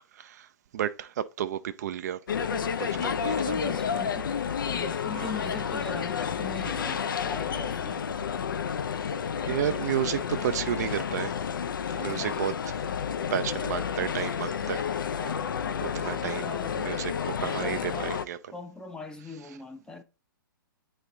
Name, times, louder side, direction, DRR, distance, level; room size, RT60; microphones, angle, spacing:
voice 1, 0.1-0.5 0.7-2.2 2.8-2.9 3.2-3.6 5.1-5.3 9.4-11.3 12.0-12.8 13.3-14.8 15.9-16.5 16.8-18.4, right 10 dB, 45° right, 0.4 m, -31 dB
sound 1, 2.3-18.3, left 7 dB, 65° left, 0.5 m, -31 dB
voice 2, 2.5-3.2 3.5-8.1 11.9-12.5 15.0-16.8 17.4-18.1 18.5-20.0, left 4 dB, 5° left, 0.6 m, -41 dB
8.8 x 3.2 x 3.7 m
figure-of-eight pair, 115°, 12 cm